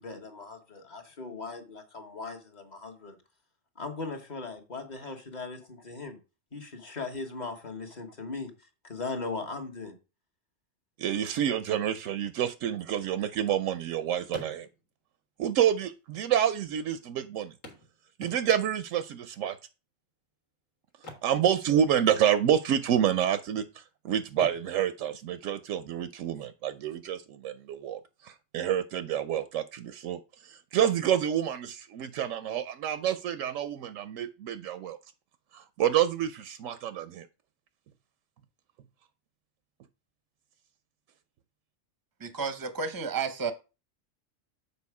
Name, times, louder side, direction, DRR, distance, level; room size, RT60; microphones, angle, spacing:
voice 1, 0.0-3.2 3.8-6.2 6.5-8.5 8.8-9.9, left 3 dB, 35° left, 1.3 m, -38 dB
voice 2, 11.0-14.7 15.4-17.5 18.2-19.6 21.2-23.6 24.0-30.2 30.5-35.0 35.5-37.3, right 10 dB, 85° right, 1.0 m, -28 dB
sound 1, 14.3-15.1 16.0-16.1 16.3-16.4 17.6-18.8 20.9-22.2 22.4-22.7 23.2-23.8 24.3-26.1 28.0-28.1 28.6-28.7, left 1 dB, 85° left, 2.0 m, -48 dB
voice 3, 42.2-43.5, right 5 dB, 20° right, 0.6 m, -31 dB
7.0 x 4.6 x 4.7 m
omnidirectional pair, 1.3 m